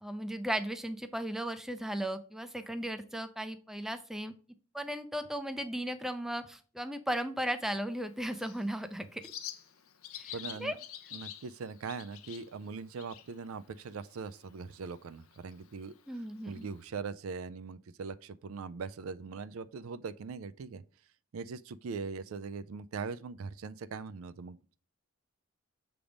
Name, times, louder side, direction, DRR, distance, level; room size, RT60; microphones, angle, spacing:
voice 1, 0.0-4.3 4.7-9.2 10.1-10.3 10.6-10.7 16.1-16.7, right 1 dB, ahead, 0.4 m, -36 dB
Bird, 7.9-16.9, left 11 dB, 80° left, 0.6 m, -49 dB
voice 2, 10.3-10.8 11.1-16.0 16.5-20.8 21.3-24.8, right 5 dB, 75° right, 0.4 m, -41 dB
7.1 x 3.4 x 5.1 m
head